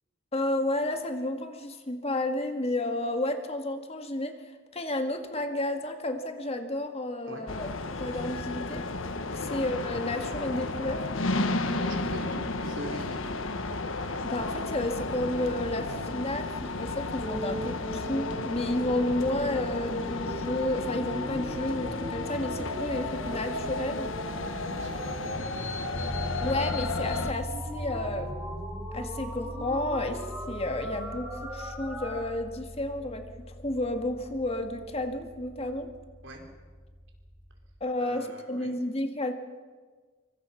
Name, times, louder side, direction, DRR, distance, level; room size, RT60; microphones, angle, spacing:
voice 1, 0.3-4.4 4.7-8.8 9.5-11.0 14.2-24.1 26.4-28.5 28.9-35.9 37.8-39.3, left 1 dB, 30° left, 6 dB, 1.9 m, -31 dB
sound 1, 7.5-27.3, left 3 dB, 85° left, 1.5 m, -33 dB
voice 2, 11.8-13.2 24.6-25.5 36.2-36.4 38.0-38.8, right 1 dB, 70° right, 2 dB, 4.7 m, -42 dB
sound 2, 17.2-32.2, equal, 10° right, 6.0 m, -39 dB
sound 3, 25.9-37.8, equal, 55° left, 6.0 m, -41 dB
25.0 x 24.5 x 5.9 m, 1.5 s
head